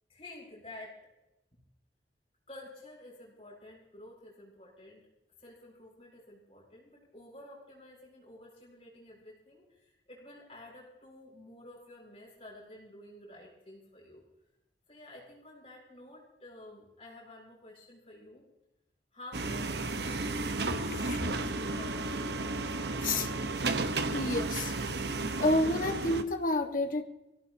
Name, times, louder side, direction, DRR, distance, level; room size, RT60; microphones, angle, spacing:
voice 1, 0.1-1.0 1.5-1.6 2.5-5.0 5.4-14.2 14.9-18.4 19.1-19.7 20.1-21.2 21.6-22.1 22.4-22.9, left 1 dB, 35° left, -4 dB, 7.7 m, -51 dB
sound 1, 19.3-26.2, right 2 dB, 70° right, 1.0 m, -33 dB
voice 2, 20.9-21.3 23.0-23.3 24.0-24.8 25.3-27.0, left 2 dB, 50° left, 6 dB, 1.6 m, -30 dB
24.5 x 17.0 x 2.9 m, 0.96 s
head